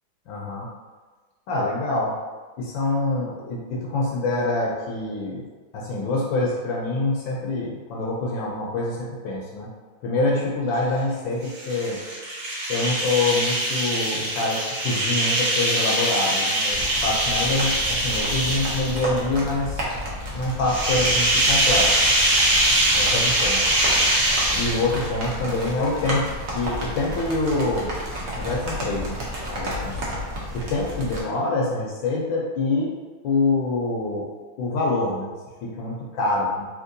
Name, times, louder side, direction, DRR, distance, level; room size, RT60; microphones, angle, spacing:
voice 1, 0.3-0.7 1.5-2.1 2.6-5.5 5.7-9.7 10.0-12.0 12.7-19.8 20.3-22.2 23.0-23.6 24.5-27.9 28.4-29.2 29.5-30.2 30.5-33.0 33.2-34.3 34.6-35.3 35.6-36.6, left 2 dB, 75° left, -3 dB, 1.2 m, -25 dB
sound 1, 11.4-19.2 20.6-25.1, right 1 dB, 50° right, 1.4 m, -22 dB
sound 2, 16.7-31.2, equal, 85° right, 0.6 m, -32 dB
3.6 x 2.9 x 2.6 m, 1.4 s
omnidirectional pair, 2.3 m